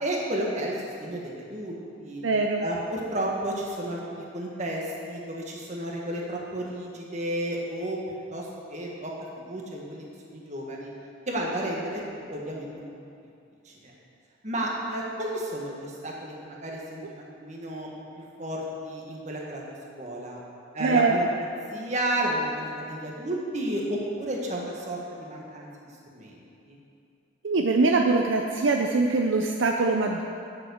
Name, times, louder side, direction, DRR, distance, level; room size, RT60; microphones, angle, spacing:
voice 1, 0.0-2.2 2.6-8.0 8.3-9.1 9.5-10.0 10.3-10.9 11.3-12.0 12.3-12.9 13.6-13.9 14.4-17.9 18.4-19.6 20.0-20.4 20.7-21.2 21.7-25.7 26.1-26.8, right 1 dB, 35° right, -2 dB, 1.7 m, -32 dB
voice 2, 2.2-2.6 20.8-21.2 27.4-30.2, right 3 dB, 65° right, 2 dB, 0.6 m, -23 dB
9.4 x 7.6 x 6.4 m, 2.5 s
head